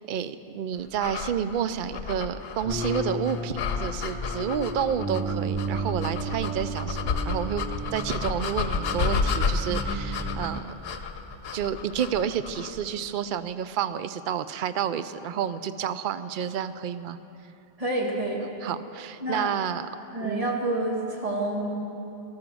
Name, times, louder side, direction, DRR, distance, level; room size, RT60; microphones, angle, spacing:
voice 1, 0.1-10.7 11.5-17.2 18.6-19.9 20.2-20.5, right 8 dB, 60° right, 12 dB, 0.7 m, -30 dB
sound 1, 1.0-12.9, left 5 dB, 70° left, 1.0 m, -31 dB
sound 2, 2.6-10.6, right 2 dB, 10° right, 0.6 m, -34 dB
voice 2, 17.8-18.4 19.2-19.5 20.1-21.7, right 1 dB, 35° right, -2 dB, 2.1 m, -28 dB
14.5 x 13.0 x 6.2 m, 2.9 s
omnidirectional pair, 1.1 m